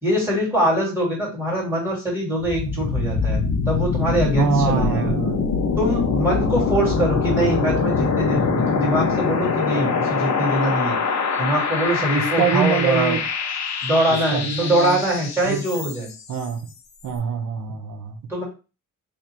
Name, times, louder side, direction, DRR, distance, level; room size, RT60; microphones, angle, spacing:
voice 1, 0.0-5.1 5.8-10.9 11.4-13.2 13.8-16.1 18.3-18.4, right 1 dB, 5° right, -5 dB, 2.2 m, -23 dB
sound 1, 2.4-16.2, left 5 dB, 55° left, 0.7 m, -23 dB
voice 2, 4.4-5.4 12.1-13.2 14.1-15.0 15.4-15.6 16.3-16.7 17.0-18.2, right 6 dB, 65° right, 6 dB, 0.8 m, -24 dB
3.3 x 2.5 x 4.3 m, 0.31 s
wide cardioid pair, 150°, 33 cm